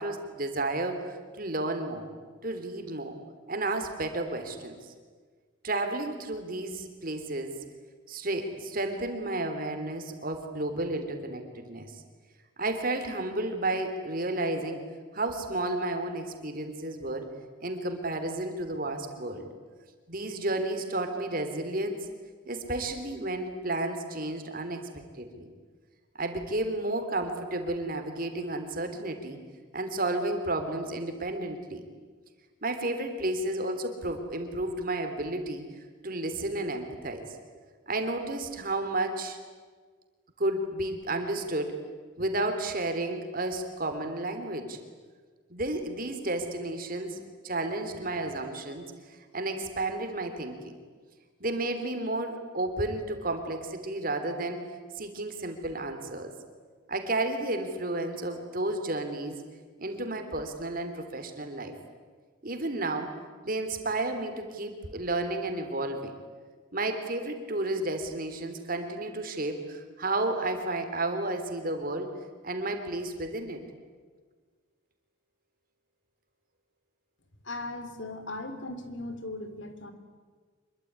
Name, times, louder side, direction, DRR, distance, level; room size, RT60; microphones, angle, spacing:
voice 1, 0.0-2.1 2.4-3.1 3.5-4.9 5.6-7.5 8.1-11.9 12.6-14.8 15.1-17.3 17.6-19.5 20.1-22.1 22.4-25.5 26.2-29.4 29.7-31.8 32.6-35.7 36.0-37.3 37.9-39.4 40.4-41.7 42.2-44.8 45.5-50.8 51.4-54.6 55.0-56.3 56.9-59.4 59.8-61.8 62.4-63.1 63.4-66.1 66.7-72.1 72.4-73.6, right 2 dB, 45° right, 7 dB, 3.4 m, -32 dB
voice 2, 77.4-79.9, left 2 dB, 70° left, 9 dB, 3.3 m, -38 dB
26.0 x 23.0 x 9.6 m, 1.5 s
head